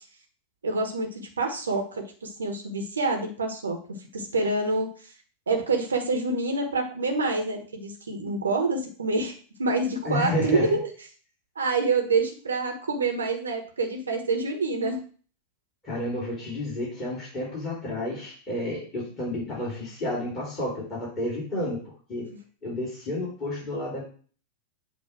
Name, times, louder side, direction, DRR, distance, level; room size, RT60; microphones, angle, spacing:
voice 1, 0.6-3.8 4.1-4.9 5.5-10.8 11.6-15.0, right 3 dB, 70° right, 3 dB, 1.2 m, -27 dB
voice 2, 10.0-10.7 15.8-21.8 22.1-22.3 22.6-24.0, left 1 dB, 30° left, -6 dB, 3.5 m, -30 dB
8.2 x 2.8 x 6.0 m, 0.41 s
figure-of-eight pair, 90°, 0 cm